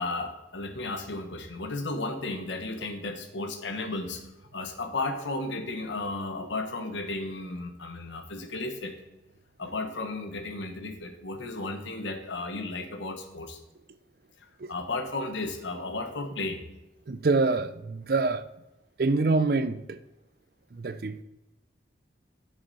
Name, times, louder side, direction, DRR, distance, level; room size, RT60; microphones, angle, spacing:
voice 1, 0.0-4.2 4.5-9.0 9.6-13.6 14.4-16.6, left 2 dB, 80° left, 1.3 m, -34 dB
voice 2, 17.1-18.5 19.0-20.0 20.7-21.2, right 3 dB, 55° right, 0.5 m, -26 dB
9.4 x 7.1 x 4.1 m
head